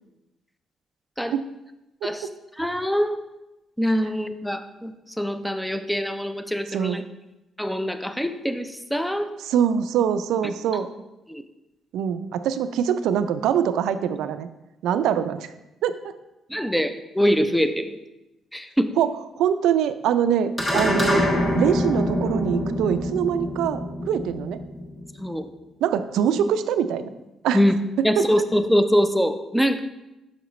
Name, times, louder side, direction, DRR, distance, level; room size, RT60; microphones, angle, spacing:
voice 1, 2.6-3.2 3.8-4.9 5.2-7.0 7.6-9.3 10.7-10.8 11.3-11.4 16.5-18.0 18.5-18.9 25.2-25.5 27.5-27.8 28.0-29.8, equal, ahead, 9 dB, 0.5 m, -23 dB
voice 2, 9.4-10.9 11.9-14.5 14.8-15.5 15.8-15.9 19.0-19.1 19.4-21.3 21.6-24.6 25.8-27.1 27.4-27.6 28.0-28.4, right 8 dB, 85° right, 11 dB, 0.4 m, -23 dB
sound 1, 20.6-25.2, left 1 dB, 20° left, 1.3 m, -25 dB
6.4 x 5.8 x 3.0 m, 0.96 s
cardioid pair, 90°, 0 cm